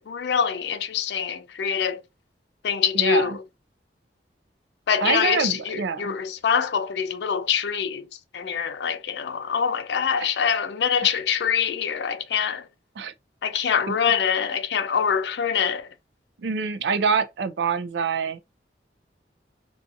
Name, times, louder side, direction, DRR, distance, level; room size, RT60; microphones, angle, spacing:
voice 1, 0.1-2.0 2.6-3.4 4.9-8.1 8.3-12.7 13.4-15.9, left 7 dB, 70° left, 0.4 m, -24 dB
voice 2, 3.0-3.4 5.0-6.1 13.0-13.1 13.9-14.0 16.4-18.4, right 5 dB, 75° right, 0.4 m, -25 dB
2.6 x 2.4 x 2.5 m
head